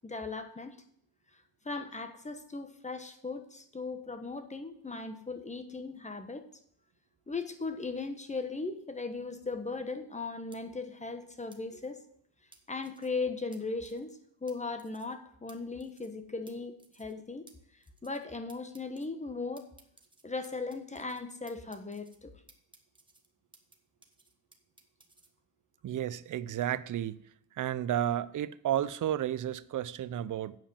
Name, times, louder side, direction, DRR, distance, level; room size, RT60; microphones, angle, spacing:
voice 1, 0.0-0.7 1.6-6.4 7.3-12.0 12.7-14.1 14.4-17.4 18.0-19.7 20.2-22.4, left 3 dB, 15° left, 1.1 m, -38 dB
sound 1, 10.5-10.6 11.5-11.6 12.5-13.1 13.5-13.6 13.8-14.1 14.5-14.6 14.8-15.1 15.5-15.6 15.8-16.2 16.5-16.6 16.8-17.1 17.5-17.6 17.8-18.2 18.5-19.1 19.6-21.2 21.5-22.2 22.5-23.8 24.0-25.3, right 2 dB, 10° right, 1.3 m, -59 dB
voice 2, 25.8-27.2 27.6-30.6, right 11 dB, 40° right, 0.6 m, -32 dB
8.9 x 5.1 x 7.2 m
cardioid pair, 85°, 47 cm